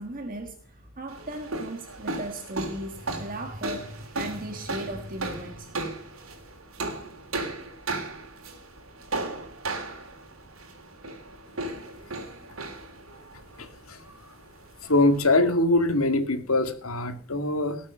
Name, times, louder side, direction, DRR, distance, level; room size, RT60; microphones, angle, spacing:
voice 1, 0.0-6.4, right 1 dB, 40° right, 5 dB, 1.6 m, -37 dB
sound 1, 1.1-15.3, right 2 dB, 70° right, 3.0 m, -36 dB
voice 2, 13.6-14.1 14.8-17.8, left 2 dB, 85° left, 8 dB, 2.2 m, -23 dB
18.5 x 7.3 x 6.4 m, 0.42 s
head